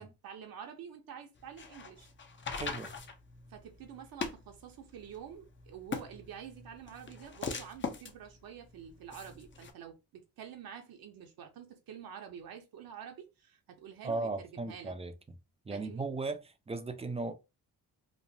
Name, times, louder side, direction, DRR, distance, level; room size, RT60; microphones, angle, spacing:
voice 1, 0.0-2.1 3.5-14.9 15.7-16.1, right 8 dB, 65° right, 0.7 m, -48 dB
sound 1, 1.4-9.7, left 5 dB, 30° left, 0.6 m, -42 dB
voice 2, 2.5-2.9 14.0-15.1 15.7-17.3, right 3 dB, 15° right, 0.4 m, -37 dB
3.0 x 2.1 x 2.6 m
supercardioid pair, 70°, 38 cm